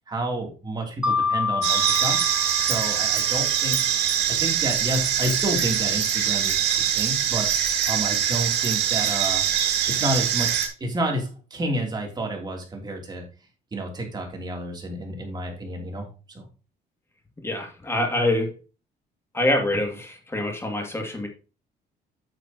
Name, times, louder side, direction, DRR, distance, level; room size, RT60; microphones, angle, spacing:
voice 1, 0.1-2.2 2.6-3.8 4.3-7.5 7.9-9.4 10.0-13.2 13.7-16.0 16.3-16.5, right 1 dB, 25° right, 1 dB, 3.1 m, -30 dB
Mallet percussion, 1.0-3.8, left 5 dB, 5° right, 0.7 m, -28 dB
sound 1, 1.6-10.7, right 9 dB, 90° right, 2.3 m, -23 dB
voice 2, 17.4-18.5 19.3-21.3, left 1 dB, 15° left, 3 dB, 2.4 m, -25 dB
9.3 x 6.7 x 2.9 m, 0.33 s
cardioid pair, 110°, 17 cm